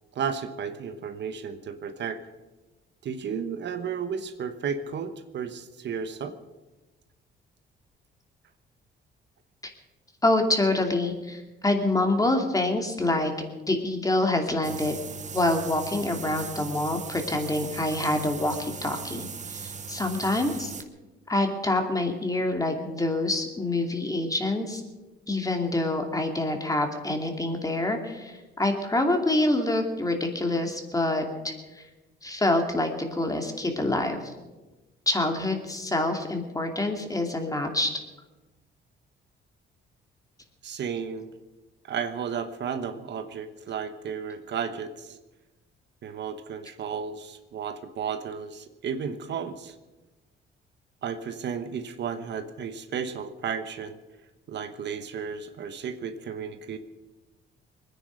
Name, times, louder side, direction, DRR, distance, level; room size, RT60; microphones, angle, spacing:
voice 1, 0.1-2.2 3.0-6.4 40.6-41.3 41.8-45.2 46.0-49.7 51.0-54.0 54.5-56.8, right 6 dB, 60° right, 9 dB, 1.1 m, -33 dB
voice 2, 10.2-13.3 13.7-15.0 15.3-20.7 21.3-24.8 25.3-31.8 32.2-34.3 35.1-37.9, left 2 dB, 15° left, 4 dB, 2.6 m, -26 dB
sound 1, 14.6-20.8, right 6 dB, 35° right, 1.1 m, -39 dB
21.5 x 10.0 x 6.4 m, 1.1 s
cardioid pair, 90°, 20 cm